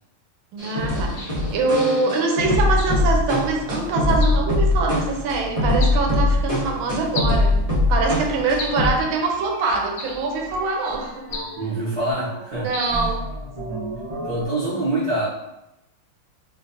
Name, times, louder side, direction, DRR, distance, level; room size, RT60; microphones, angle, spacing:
voice 1, 0.5-7.6 7.9-11.3 12.6-13.3, right 3 dB, 85° right, 2 dB, 1.4 m, -24 dB
sound 1, 0.6-9.1 9.3-9.4 9.7-11.7 12.0-14.4, left 2 dB, 25° right, 1.0 m, -23 dB
sound 2, 1.2-1.4 2.8-3.0 4.2-4.5 5.8-6.1 7.1-7.4 8.6-8.9 10.0-10.3 11.3-11.6 12.7-13.0, left 4 dB, 90° left, 1.4 m, -33 dB
voice 2, 11.5-12.7 14.2-15.3, right 2 dB, 55° right, -12 dB, 1.8 m, -25 dB
4.4 x 2.5 x 2.6 m, 0.91 s
omnidirectional pair, 2.2 m